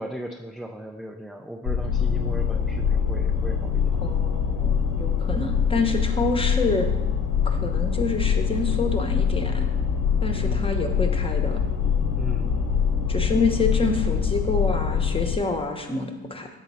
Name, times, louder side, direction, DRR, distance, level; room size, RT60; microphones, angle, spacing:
voice 1, 0.0-4.0 10.4-10.7 12.1-12.5, right 1 dB, ahead, 2 dB, 0.4 m, -37 dB
sound 1, 1.7-15.4, left 7 dB, 85° left, 1.0 m, -24 dB
voice 2, 4.0-6.9 7.4-9.7 10.2-11.6 13.1-16.5, left 3 dB, 20° left, 4 dB, 0.9 m, -27 dB
7.3 x 3.9 x 5.4 m, 1.1 s
cardioid pair, 90°, 30 cm